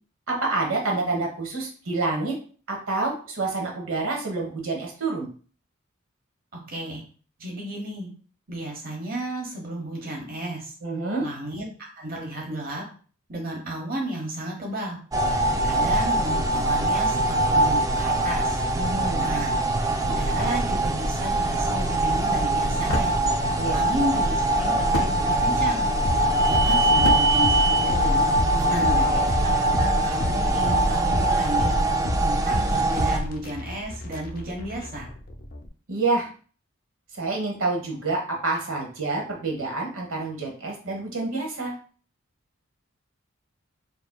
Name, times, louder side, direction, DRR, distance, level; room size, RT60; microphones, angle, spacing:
voice 1, 0.3-2.3 2.7-5.3 10.8-11.3 18.8-19.2 23.5-23.8 28.5-29.2 35.9-36.3 37.1-41.7, right 3 dB, 80° right, 0 dB, 1.2 m, -28 dB
voice 2, 6.7-7.0 7.4-8.1 8.5-10.7 11.2-12.8 13.3-15.0 15.5-18.6 19.2-19.5 20.0-23.1 23.7-25.8 26.2-28.2 28.7-28.9 29.6-31.7 32.2-35.1, right 1 dB, 45° right, -1 dB, 1.1 m, -33 dB
sound 1, 15.1-33.2, right 1 dB, 15° right, 0.3 m, -22 dB
sound 2, 19.6-28.4, left 1 dB, 75° left, 0.7 m, -36 dB
sound 3, 26.0-35.7, left 1 dB, 45° left, 0.6 m, -30 dB
6.7 x 2.7 x 2.3 m, 0.41 s
head